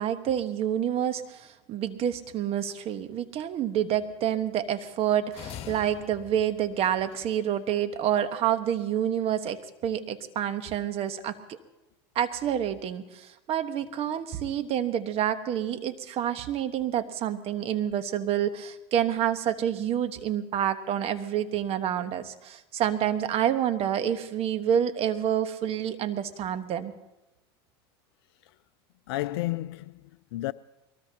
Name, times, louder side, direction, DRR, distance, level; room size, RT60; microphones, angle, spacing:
voice 1, 0.0-11.6 12.1-26.9, right 10 dB, 45° right, 1.3 m, -28 dB
sound 1, 5.3-7.6, left 9 dB, 45° left, 2.1 m, -44 dB
voice 2, 29.1-30.5, left 17 dB, 80° left, 0.4 m, -32 dB
22.5 x 19.5 x 2.9 m
supercardioid pair, 100°, 14 cm